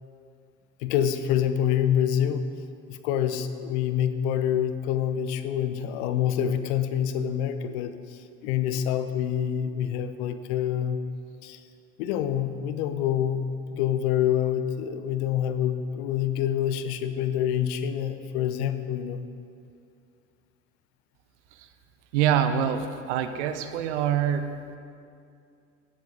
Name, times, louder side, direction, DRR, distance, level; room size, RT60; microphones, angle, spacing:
voice 1, 0.8-2.6 2.9-11.0 11.4-11.6 12.0-13.4 13.7-19.3, left 9 dB, 55° left, 10 dB, 0.8 m, -26 dB
voice 2, 22.1-24.8, right 9 dB, 65° right, 10 dB, 0.8 m, -25 dB
14.5 x 7.4 x 3.9 m, 2.4 s
figure-of-eight pair, 65°, 39 cm